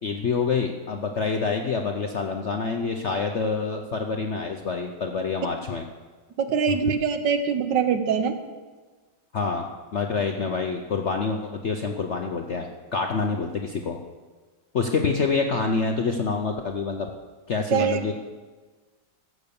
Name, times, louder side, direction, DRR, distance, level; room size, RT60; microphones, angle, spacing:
voice 1, 0.0-5.8 6.7-6.8 9.3-14.0 14.7-17.1 17.5-18.1, left 4 dB, 60° left, 3 dB, 0.7 m, -27 dB
voice 2, 6.4-8.4 17.7-18.1, right 7 dB, 70° right, 8 dB, 1.5 m, -23 dB
14.5 x 6.8 x 7.0 m, 1.4 s
omnidirectional pair, 2.1 m